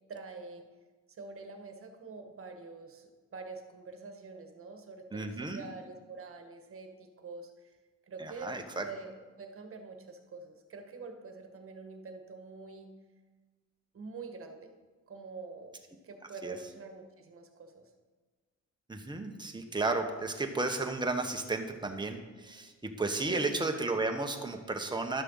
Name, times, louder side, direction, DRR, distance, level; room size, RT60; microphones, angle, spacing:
voice 1, 0.1-0.6 1.1-7.7 8.1-8.5 8.8-12.9 13.9-14.7 15.1-15.8 16.0-17.8 23.3-23.6, right 4 dB, 45° right, 5 dB, 1.6 m, -46 dB
voice 2, 5.1-5.6 8.2-8.8 16.4-16.6 18.9-25.2, right 3 dB, 15° right, 4 dB, 1.3 m, -33 dB
11.5 x 6.7 x 5.6 m, 1.3 s
cardioid pair, 90°, 30 cm